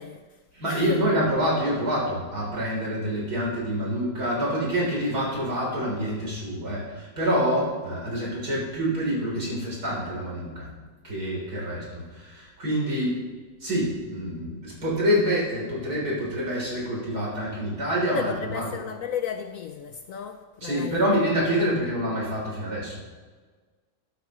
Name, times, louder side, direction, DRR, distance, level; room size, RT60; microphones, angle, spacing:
voice 1, 0.0-1.0 18.1-21.1 21.5-21.7, left 7 dB, 70° left, 0.8 m, -34 dB
voice 2, 0.5-10.7 11.0-13.2 13.6-18.8 20.6-23.0, equal, 55° right, 4.1 m, -27 dB
13.0 x 12.0 x 3.1 m
omnidirectional pair, 2.0 m